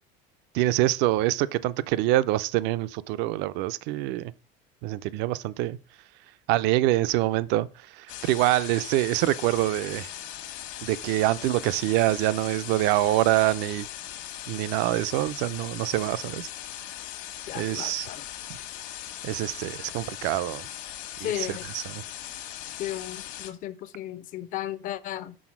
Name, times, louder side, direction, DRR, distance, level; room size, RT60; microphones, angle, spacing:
voice 1, 0.5-4.3 4.8-5.8 6.5-7.7 8.0-10.1 10.8-13.9 14.5-16.5 17.5-18.1 19.2-20.6 21.2-22.0, right 16 dB, 60° right, 0.4 m, -25 dB
sound 1, 8.1-23.5, left 12 dB, 70° left, 1.2 m, -39 dB
voice 2, 17.5-18.2 21.2-21.7 22.8-25.4, left 13 dB, 40° left, 0.5 m, -34 dB
6.2 x 3.8 x 6.0 m
cardioid pair, 140°, 20 cm